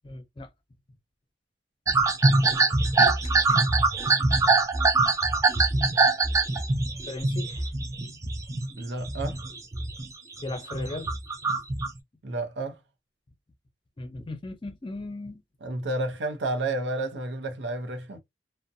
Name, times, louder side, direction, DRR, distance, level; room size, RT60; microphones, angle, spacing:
voice 1, 0.0-0.5 3.0-3.3 7.1-7.7 8.2-8.4 10.4-11.1 11.4-11.5 14.0-15.4, left 2 dB, 30° left, 0.5 m, -37 dB
sound 1, 1.9-8.7 9.0-10.0 10.4-11.9, right 3 dB, 20° right, 0.3 m, -23 dB
voice 2, 8.8-9.4 12.2-12.8 15.6-18.2, right 2 dB, 85° right, 0.6 m, -31 dB
2.6 x 2.1 x 2.5 m
head